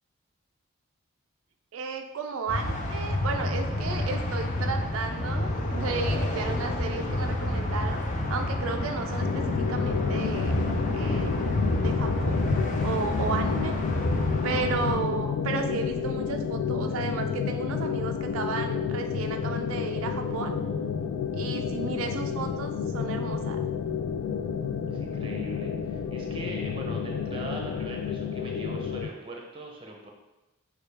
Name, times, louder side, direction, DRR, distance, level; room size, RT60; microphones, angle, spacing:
voice 1, 1.7-8.0 8.3-10.5 10.9-11.4 11.8-12.5 12.8-13.7 14.4-20.6 21.3-23.6, right 4 dB, 80° right, 5 dB, 0.3 m, -33 dB
sound 1, 2.5-14.9, left 1 dB, 35° left, 0.5 m, -29 dB
sound 2, 9.2-29.1, left 6 dB, 90° left, 0.3 m, -30 dB
voice 2, 24.8-30.1, right 1 dB, 25° right, 0 dB, 0.6 m, -41 dB
6.5 x 2.3 x 3.3 m, 1.0 s
head